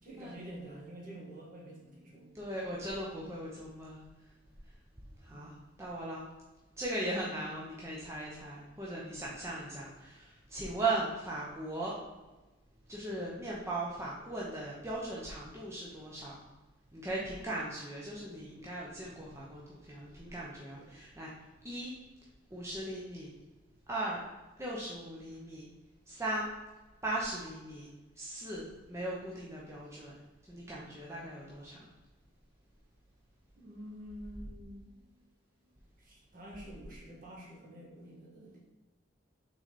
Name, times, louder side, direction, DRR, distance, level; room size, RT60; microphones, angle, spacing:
voice 1, 0.0-2.3 5.3-5.6 9.1-9.3 10.6-10.7 17.1-17.4 20.7-21.0 33.6-34.9 36.0-38.6, right 1 dB, 45° right, -4 dB, 1.9 m, -49 dB
voice 2, 2.3-4.1 5.2-5.5 5.8-6.2 6.8-11.9 12.9-16.4 16.9-21.3 21.6-21.9 22.5-23.3 23.9-24.2 24.6-25.6 26.1-26.5 27.0-27.9 28.2-30.1 30.5-31.9, right 2 dB, 15° right, -5 dB, 0.8 m, -38 dB
6.1 x 4.0 x 4.1 m, 1.1 s
head